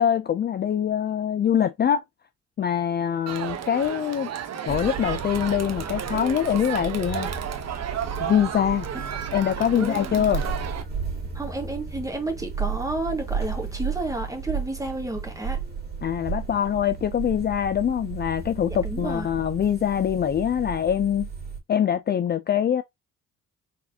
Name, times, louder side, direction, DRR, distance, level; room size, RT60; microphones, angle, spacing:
voice 1, 0.0-2.0 2.6-4.3 4.7-7.3 8.2-8.9 9.3-10.4 16.0-21.3 21.7-22.8, left 9 dB, 35° left, 0.4 m, -24 dB
Crowd, 3.3-10.8, right 9 dB, 60° right, 1.0 m, -33 dB
sound 1, 4.7-21.6, right 5 dB, 30° right, 2.4 m, -34 dB
voice 2, 9.8-10.2 11.3-15.6 18.8-19.3, right 2 dB, 10° right, 1.6 m, -31 dB
4.2 x 3.3 x 2.7 m
cardioid pair, 90°, 30 cm